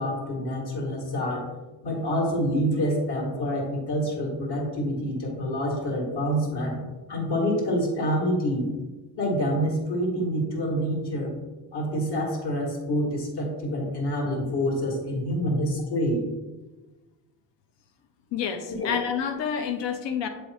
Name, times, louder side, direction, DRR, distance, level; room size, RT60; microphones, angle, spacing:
voice 1, 0.0-1.5 1.8-6.8 7.1-8.7 9.2-11.4 11.7-16.2 18.7-18.9 19.6-19.7, equal, 65° left, 0 dB, 1.8 m, -27 dB
voice 2, 18.3-20.3, left 7 dB, 85° left, 7 dB, 0.8 m, -28 dB
8.1 x 3.3 x 4.1 m, 1.2 s
cardioid pair, 90°, 42 cm